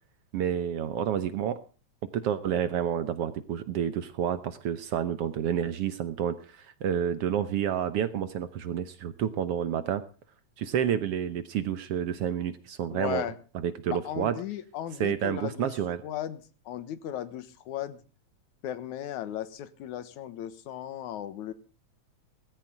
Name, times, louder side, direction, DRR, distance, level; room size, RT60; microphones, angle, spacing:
voice 1, 0.3-1.6 2.0-10.0 10.6-13.3 13.6-14.4 15.0-16.0, right 9 dB, 65° right, 13 dB, 1.6 m, -29 dB
voice 2, 12.9-13.4 13.9-15.7 16.0-18.0 18.6-21.5, left 11 dB, 80° left, 14 dB, 2.6 m, -36 dB
17.5 x 15.5 x 3.7 m, 0.36 s
omnidirectional pair, 3.3 m